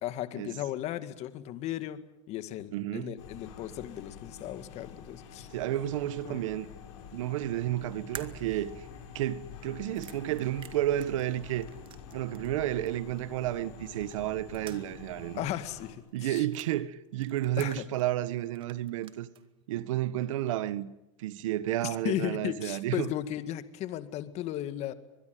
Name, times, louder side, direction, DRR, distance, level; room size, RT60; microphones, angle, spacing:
voice 1, 0.0-2.0 2.3-5.5 6.2-6.4 15.4-16.5 17.6-17.8 21.8-24.9, left 12 dB, 40° left, 1.9 m, -35 dB
voice 2, 2.7-3.1 5.5-6.7 7.1-8.9 9.1-11.7 12.1-15.4 16.1-19.3 19.7-20.9 21.2-23.1, right 13 dB, 75° right, 1.5 m, -31 dB
sound 1, 3.2-15.9, left 7 dB, 65° left, 7.1 m, -48 dB
sound 2, 8.1-12.6 12.9-13.0 14.1-15.1 15.4-15.5 16.2-16.7 17.2-18.3 18.5-19.4, right 9 dB, 30° right, 2.1 m, -49 dB
24.0 x 21.0 x 9.4 m
supercardioid pair, 135°, 16 cm